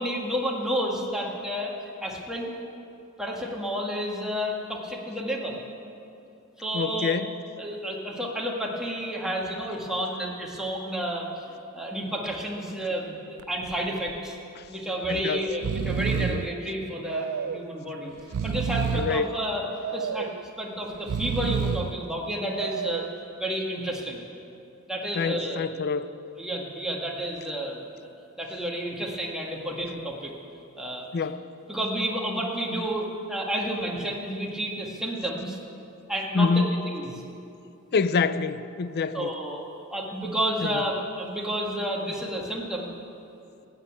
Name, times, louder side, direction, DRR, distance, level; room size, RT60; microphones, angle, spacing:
voice 1, 0.0-1.7 2.0-2.5 3.2-5.6 6.6-7.2 7.6-14.3 14.7-18.1 18.4-19.7 19.9-20.3 20.6-23.1 23.4-24.2 24.8-25.8 26.4-28.1 28.4-30.3 30.8-31.1 31.7-35.6 36.1-37.2 39.1-39.6 39.9-42.9, equal, 5° right, 1.7 m, -31 dB
voice 2, 6.7-7.3 15.1-15.4 16.1-16.4 18.9-19.3 25.2-26.1 31.1-31.4 36.3-36.8 37.9-39.3 40.6-40.8, left 4 dB, 50° left, 0.5 m, -26 dB
Breathing, 13.4-13.7 14.1-14.2 15.0-15.2 15.5-16.5 17.1-17.7 18.2-19.2 19.8-20.4 20.9-22.0 22.5-23.2, right 7 dB, 85° right, 0.4 m, -29 dB
14.5 x 8.5 x 8.8 m
head